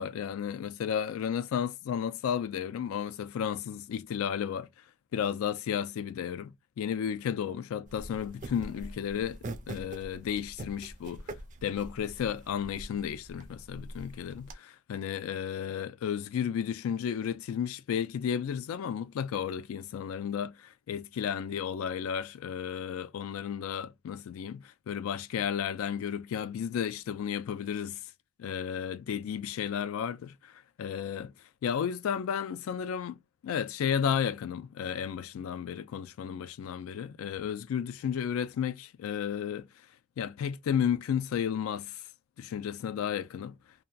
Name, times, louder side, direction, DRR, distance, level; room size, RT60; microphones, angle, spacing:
voice 1, 0.0-4.7 5.1-9.4 9.7-11.3 11.6-28.0 28.4-31.3 31.6-33.2 33.4-39.7 40.2-42.0 42.4-43.6, left 8 dB, 90° left, 0.3 m, -33 dB
sound 1, 7.9-14.5, right 1 dB, 40° right, 0.4 m, -44 dB
2.7 x 2.1 x 2.3 m
head